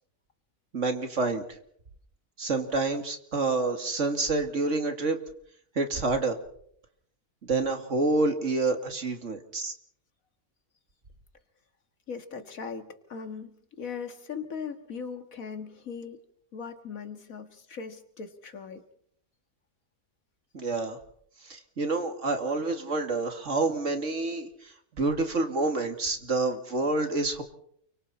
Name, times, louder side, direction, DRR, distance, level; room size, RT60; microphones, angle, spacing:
voice 1, 0.7-1.5 2.4-5.2 5.8-6.4 7.4-9.7 20.5-21.0 21.4-24.5 25.0-27.4, right 3 dB, 60° right, 6 dB, 2.5 m, -28 dB
voice 2, 12.1-16.2 16.5-18.8, left 6 dB, 85° left, 8 dB, 2.2 m, -39 dB
29.5 x 24.0 x 4.3 m, 0.66 s
omnidirectional pair, 1.4 m